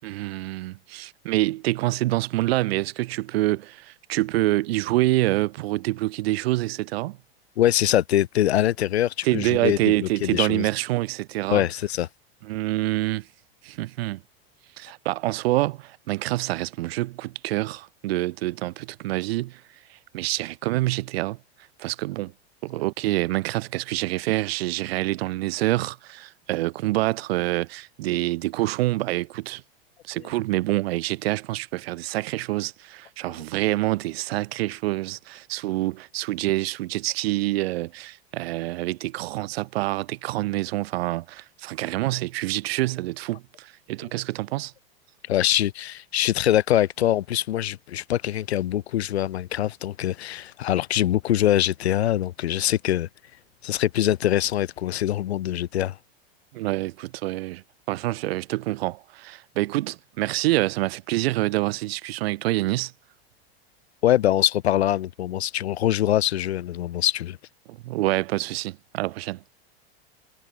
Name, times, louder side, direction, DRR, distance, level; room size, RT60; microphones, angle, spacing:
voice 1, 0.0-7.2 9.2-11.6 12.5-13.3 13.6-14.2 14.8-19.6 19.9-21.4 21.8-22.3 22.6-29.6 30.0-44.7 56.5-62.9 67.7-69.4, right 18 dB, 70° right, 6.1 m, -26 dB
voice 2, 7.6-10.7 11.5-12.1 45.3-53.1 53.6-56.0 64.0-67.4, left 12 dB, 85° left, 5.4 m, -23 dB
supercardioid pair, 125°, 31 cm